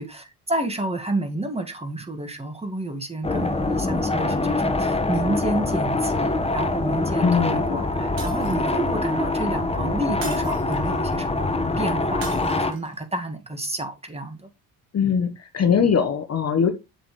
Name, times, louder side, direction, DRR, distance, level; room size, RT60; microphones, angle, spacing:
voice 1, 0.0-14.5, right 2 dB, 15° right, 1.8 m, -30 dB
sound 1, 3.2-12.7, left 2 dB, 15° left, 1.2 m, -24 dB
voice 2, 7.2-7.6 14.9-16.7, left 7 dB, 35° left, 1.1 m, -21 dB
Shatter, 8.2-8.9 10.2-11.0 12.2-13.0, right 5 dB, 75° right, 2.5 m, -40 dB
7.2 x 7.1 x 3.1 m
hypercardioid pair, 60°, 45 cm